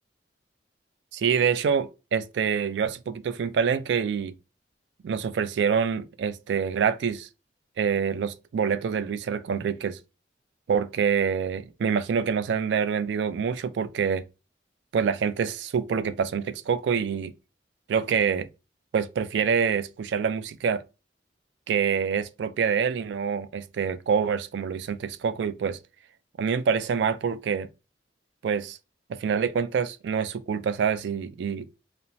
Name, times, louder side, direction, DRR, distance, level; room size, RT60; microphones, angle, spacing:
voice 1, 1.1-4.3 5.0-7.3 7.8-10.0 10.7-14.2 14.9-17.3 17.9-18.5 18.9-20.8 21.7-25.8 26.4-27.7 28.4-28.8 29.1-31.7, right 6 dB, 70° right, 0.3 m, -26 dB
2.9 x 2.1 x 2.6 m
head